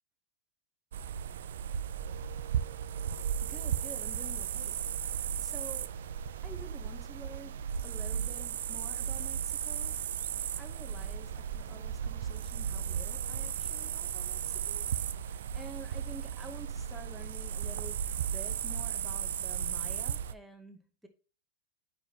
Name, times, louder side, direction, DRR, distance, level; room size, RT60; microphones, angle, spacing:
sound 1, 0.9-20.3, right 8 dB, 85° right, 0.4 m, -35 dB
voice 1, 3.4-5.9 6.4-10.0 10.3-14.8 15.2-21.1, right 2 dB, ahead, 0.8 m, -50 dB
8.9 x 5.8 x 2.8 m
supercardioid pair, 155°, 0 cm